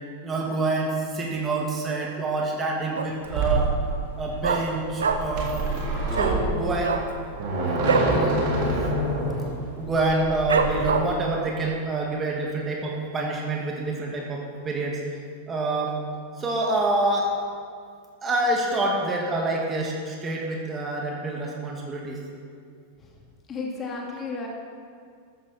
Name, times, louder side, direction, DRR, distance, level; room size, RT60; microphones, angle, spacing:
voice 1, 0.2-3.7 4.2-5.7 6.1-7.0 7.8-8.4 9.7-15.0 15.5-16.0 16.4-17.3 18.2-22.2, right 2 dB, 20° right, -1 dB, 2.5 m, -27 dB
Dog, 2.9-3.4 3.7-3.8 4.0-5.5 5.7-5.9 6.1-6.4 6.8-8.2 8.5-8.7 9.0-9.4 9.8-9.9 10.5-11.3 11.8-11.9, right 5 dB, 70° right, 1.0 m, -25 dB
sound 1, 3.2-10.8, right 2 dB, 45° right, 3.6 m, -27 dB
voice 2, 23.5-24.5, left 4 dB, 25° left, -2 dB, 2.9 m, -32 dB
14.0 x 14.0 x 4.6 m, 2.2 s
figure-of-eight pair, 90°, 0 cm